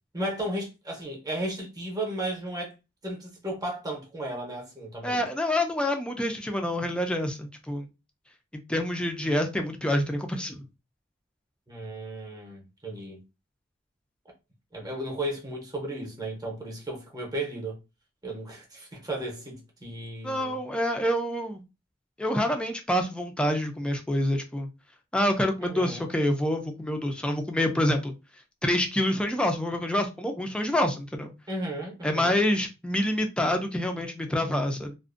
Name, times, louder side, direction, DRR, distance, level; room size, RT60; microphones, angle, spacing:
voice 1, 0.1-2.7 3.0-5.3 11.7-13.2 14.7-17.8 18.2-20.6 25.6-26.1 31.5-32.4, right 1 dB, 20° right, 0.7 m, -34 dB
voice 2, 5.0-7.9 8.7-10.7 20.2-21.6 22.2-24.7 25.1-28.1 28.6-31.3 32.0-34.9, left 1 dB, 5° left, 0.3 m, -27 dB
2.4 x 2.1 x 2.4 m
head